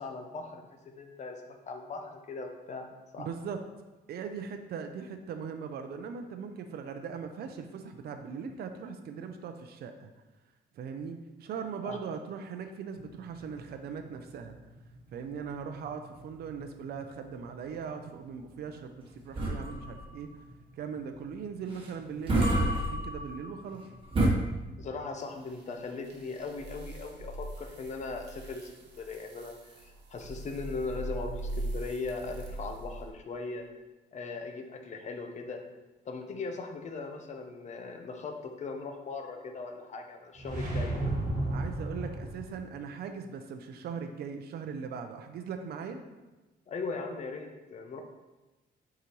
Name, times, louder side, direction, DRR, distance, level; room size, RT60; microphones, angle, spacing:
voice 1, 0.0-2.9 3.1-3.3 11.8-12.0 24.8-28.7 29.0-33.6 34.1-35.6 36.0-38.3 38.6-41.0 46.7-48.0, left 4 dB, 40° left, 4 dB, 0.7 m, -39 dB
voice 2, 3.2-3.6 4.1-10.1 10.8-14.6 15.1-20.3 20.8-23.8 41.5-46.0, right 6 dB, 65° right, 6 dB, 0.5 m, -40 dB
sound 1, 13.0-24.3, right 1 dB, 30° right, 1.3 m, -33 dB
sound 2, 25.2-33.1, right 2 dB, 80° right, 1.1 m, -41 dB
sound 3, 40.4-42.6, right 1 dB, 45° right, 1.7 m, -32 dB
6.6 x 4.9 x 3.0 m, 1.1 s
cardioid pair, 160°, 18 cm